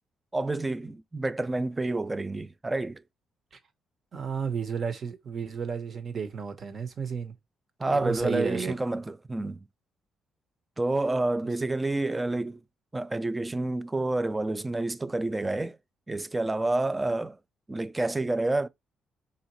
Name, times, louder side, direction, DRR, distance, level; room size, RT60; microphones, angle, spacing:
voice 1, 0.3-3.0 7.8-9.6 10.8-12.6 12.9-15.8 16.1-17.4 17.7-18.7, right 2 dB, 15° right, 0.3 m, -29 dB
voice 2, 4.1-7.3 7.9-8.7, right 6 dB, 40° right, 1.0 m, -32 dB
4.2 x 3.7 x 3.0 m
cardioid pair, 150°, 0 cm